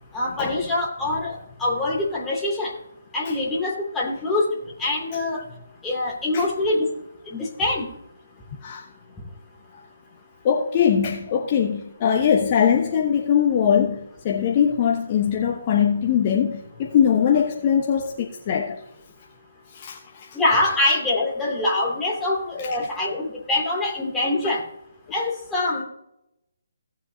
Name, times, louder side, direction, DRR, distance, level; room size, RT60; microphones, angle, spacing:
voice 1, 0.1-2.7 3.1-4.5 4.8-5.4 5.8-6.9 7.3-7.9 20.3-24.6 25.1-25.8, left 2 dB, 10° left, 2.8 m, -24 dB
voice 2, 10.4-18.8 19.7-20.3, left 8 dB, 35° left, 1.1 m, -21 dB
17.5 x 7.6 x 2.8 m
figure-of-eight pair, 145°, 0 cm